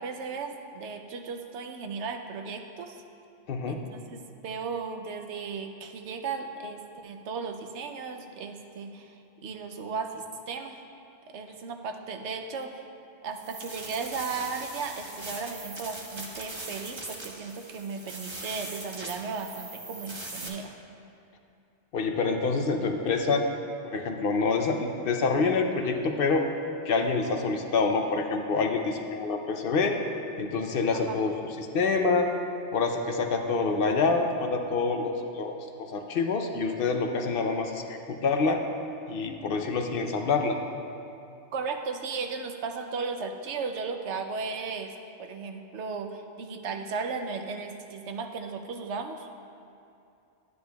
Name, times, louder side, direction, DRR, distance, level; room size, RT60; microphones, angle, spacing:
voice 1, 0.0-3.0 3.7-4.2 4.4-10.8 11.3-12.8 13.2-20.8 30.9-31.2 41.5-44.9 45.2-49.3, right 5 dB, 85° right, 6 dB, 0.9 m, -36 dB
voice 2, 3.5-3.8 21.9-23.4 23.8-26.5 26.8-30.0 30.4-32.3 32.7-38.6 39.1-40.6, left 4 dB, 60° left, 4 dB, 0.7 m, -27 dB
sound 1, 13.3-20.5, right 2 dB, 30° right, 0.8 m, -41 dB
11.5 x 9.4 x 2.3 m, 2.6 s
omnidirectional pair, 1.1 m